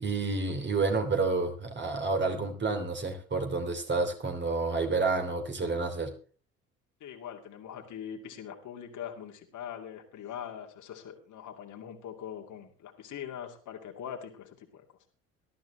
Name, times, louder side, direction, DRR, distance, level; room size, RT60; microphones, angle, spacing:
voice 1, 0.0-6.1, right 3 dB, 25° right, 4 dB, 3.0 m, -29 dB
voice 2, 7.0-14.8, left 9 dB, 45° left, 3 dB, 2.6 m, -42 dB
19.0 x 13.0 x 3.3 m, 0.38 s
figure-of-eight pair, 55°, 41 cm